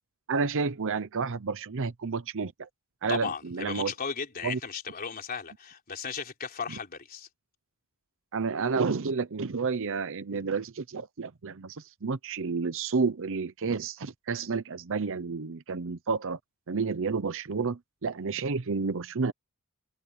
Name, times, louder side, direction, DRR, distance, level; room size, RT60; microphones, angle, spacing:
voice 1, 0.3-2.7 3.0-3.9 4.4-4.6 8.3-16.4 16.7-19.3, right 4 dB, 60° right, 0.7 m, -30 dB
voice 2, 3.1-7.3, left 5 dB, 45° left, 3.8 m, -36 dB
head